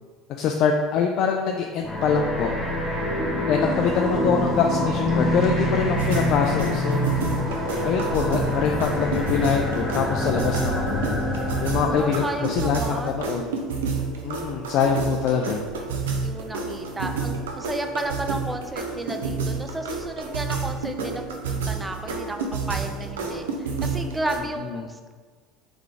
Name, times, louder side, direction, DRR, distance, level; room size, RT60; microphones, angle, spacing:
voice 1, 0.4-2.5 3.5-7.1 7.8-11.0 11.6-13.4 14.2-15.6 24.6-24.8, left 6 dB, 60° left, 2 dB, 0.3 m, -24 dB
sound 1, 1.8-12.5, left 1 dB, 10° left, 1.1 m, -26 dB
sound 2, 3.6-11.9, right 2 dB, 50° right, 1.0 m, -40 dB
sound 3, 6.0-24.4, right 4 dB, 85° right, 0.5 m, -30 dB
voice 2, 11.8-13.3 15.0-15.2 16.2-25.1, right 2 dB, 15° right, 5 dB, 0.5 m, -33 dB
3.8 x 3.5 x 3.3 m, 1.5 s
hypercardioid pair, 75°, 0 cm